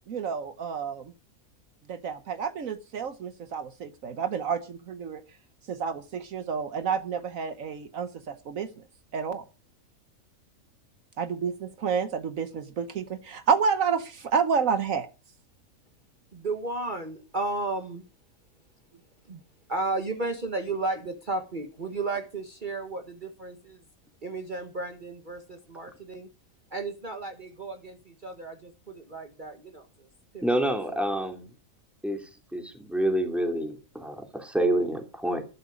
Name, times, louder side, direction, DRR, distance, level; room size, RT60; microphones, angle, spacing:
voice 1, 0.1-1.1 1.9-5.2 5.7-8.8 9.1-9.4 11.2-15.1, right 6 dB, 70° right, 11 dB, 1.4 m, -29 dB
voice 2, 16.3-18.0 19.3-19.4 19.7-23.8 24.2-26.3 26.7-30.1 30.3-30.7, right 3 dB, 35° right, 5 dB, 1.6 m, -34 dB
voice 3, 30.4-31.5 32.0-35.4, right 1 dB, ahead, 5 dB, 2.6 m, -28 dB
12.5 x 12.0 x 5.1 m, 0.33 s
omnidirectional pair, 1.5 m